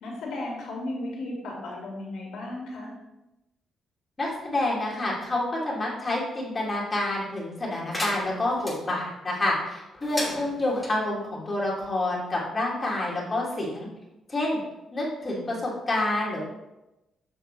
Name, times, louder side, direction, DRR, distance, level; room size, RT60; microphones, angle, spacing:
voice 1, 0.0-2.9, left 2 dB, 75° left, -2 dB, 2.2 m, -35 dB
voice 2, 4.2-13.9 14.3-14.6 14.9-16.4, left 2 dB, 30° left, -4 dB, 2.7 m, -28 dB
sound 1, 7.9-8.8 10.0-10.9, left 1 dB, 10° left, 2.5 m, -34 dB
7.1 x 6.4 x 3.4 m, 0.95 s
cardioid pair, 90°, 0 cm